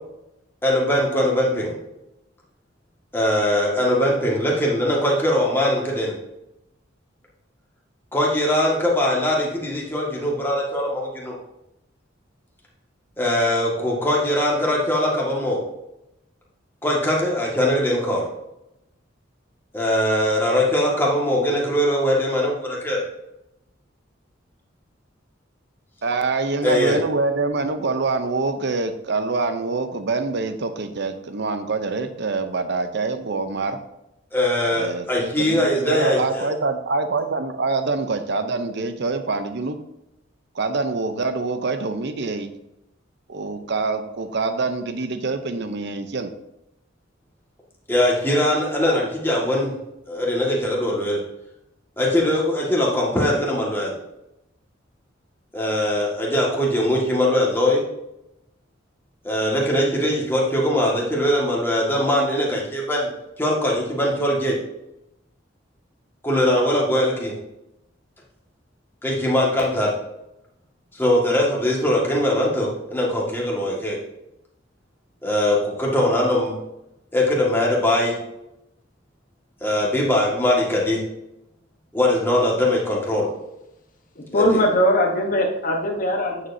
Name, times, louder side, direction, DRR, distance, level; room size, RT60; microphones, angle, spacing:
voice 1, 0.6-1.7 3.1-6.1 8.1-11.3 13.2-15.6 16.8-18.3 19.7-23.0 26.6-27.0 34.3-36.4 47.9-49.7 50.1-51.2 52.0-53.9 55.5-57.8 59.2-63.1 63.4-64.6 66.2-67.3 69.0-69.9 71.0-74.0 75.2-76.5 77.1-78.1 79.6-81.0 81.9-83.3 84.3-84.6, left 1 dB, 10° left, -3 dB, 1.9 m, -21 dB
voice 2, 26.0-33.8 34.7-39.8 40.5-42.5 43.3-46.3, right 3 dB, 60° right, 9 dB, 0.8 m, -25 dB
voice 3, 84.1-86.5, equal, 45° left, 2 dB, 1.2 m, -20 dB
9.4 x 6.9 x 2.8 m, 0.87 s
head